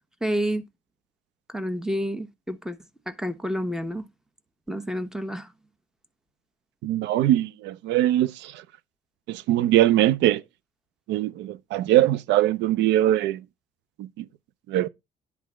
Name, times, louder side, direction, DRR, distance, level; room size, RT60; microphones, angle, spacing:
voice 1, 0.2-0.6 1.5-2.8 3.1-4.0 4.7-5.5, equal, 5° right, 1.2 m, -29 dB
voice 2, 6.8-8.6 9.3-10.4 11.1-13.4 14.0-14.2 14.7-14.9, right 13 dB, 75° right, 0.6 m, -22 dB
10.0 x 3.5 x 6.2 m
supercardioid pair, 65°, 18 cm